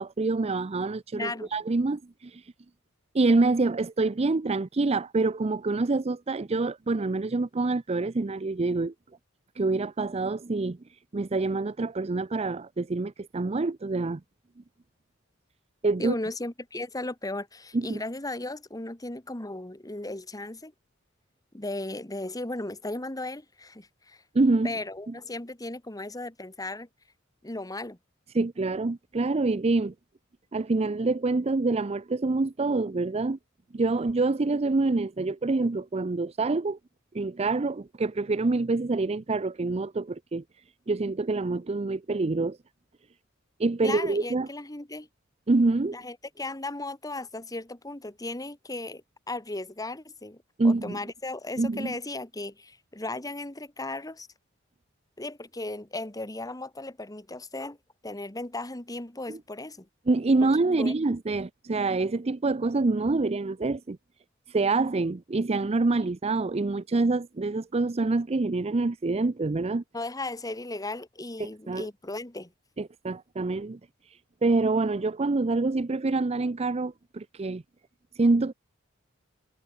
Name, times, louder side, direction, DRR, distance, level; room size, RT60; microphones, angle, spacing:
voice 1, 0.0-2.4 3.1-8.9 9.6-10.8 11.1-14.2 15.8-16.1 17.7-18.0 24.3-24.7 25.1-25.2 28.3-29.9 30.5-33.4 33.7-36.8 37.1-40.4 40.9-42.6 43.6-44.5 45.5-46.0 50.6-51.0 51.6-51.9 59.3-59.4 60.1-64.0 64.5-69.8 71.4-71.9 72.8-73.8 74.4-77.6 78.2-78.5, right 3 dB, 30° right, 0.5 m, -26 dB
voice 2, 1.1-1.5 16.0-20.7 21.5-24.2 24.6-26.9 27.4-28.0 43.8-45.1 45.9-54.3 55.2-57.8 58.0-59.9 60.8-60.9 69.9-72.5, left 2 dB, 20° left, 1.8 m, -36 dB
head